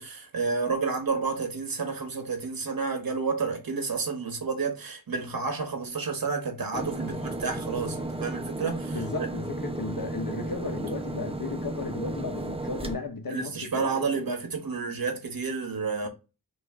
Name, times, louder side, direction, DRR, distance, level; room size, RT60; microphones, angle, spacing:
voice 1, 0.0-9.0 13.3-16.1, right 4 dB, 70° right, 1.2 m, -30 dB
sound 1, 6.7-12.9, right 1 dB, 15° right, 0.7 m, -34 dB
voice 2, 8.6-14.3 16.0-16.1, left 4 dB, 70° left, 1.0 m, -35 dB
3.1 x 3.1 x 4.6 m
wide cardioid pair, 55°, 36 cm